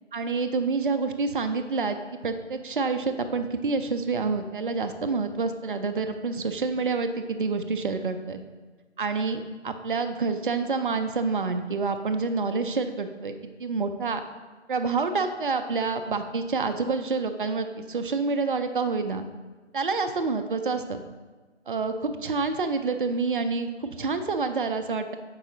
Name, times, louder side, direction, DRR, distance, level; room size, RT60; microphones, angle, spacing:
voice 1, 0.1-2.0 2.2-8.4 9.0-13.3 13.6-14.2 14.7-19.3 19.7-21.0 21.7-25.2, right 4 dB, 45° right, 8 dB, 0.5 m, -28 dB
8.4 x 4.7 x 3.1 m, 1.3 s
figure-of-eight pair, 160°, 35 cm